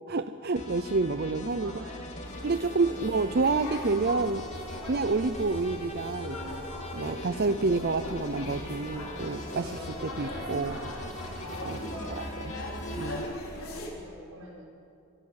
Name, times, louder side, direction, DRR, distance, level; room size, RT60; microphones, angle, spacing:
voice 1, 0.1-1.8 2.4-4.4 4.9-6.4 6.9-10.8 11.6-11.8 12.1-12.5 13.0-13.3, right 3 dB, 50° right, 10 dB, 0.6 m, -29 dB
sound 1, 0.6-13.2, left 1 dB, 35° left, 3.2 m, -41 dB
voice 2, 1.6-2.1 11.7-12.6 13.9-14.7, right 1 dB, 90° right, -2 dB, 6.4 m, -48 dB
sound 2, 2.2-13.9, left 1 dB, 85° left, 3.8 m, -39 dB
23.0 x 17.0 x 8.6 m, 2.5 s
head